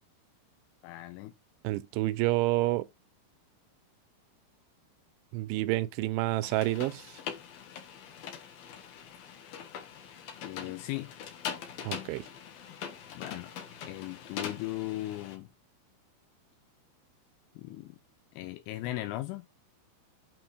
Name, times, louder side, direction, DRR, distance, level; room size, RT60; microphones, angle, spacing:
voice 1, 0.8-1.3 10.4-11.1 13.1-13.5 13.9-15.5 17.6-18.0 18.4-19.5, left 16 dB, 85° left, 3.2 m, -37 dB
voice 2, 1.6-2.9 5.3-7.2 11.8-12.3, right 17 dB, 85° right, 2.8 m, -29 dB
sound 1, 6.4-15.4, left 8 dB, 65° left, 2.6 m, -42 dB
8.5 x 3.9 x 4.7 m
omnidirectional pair, 5.6 m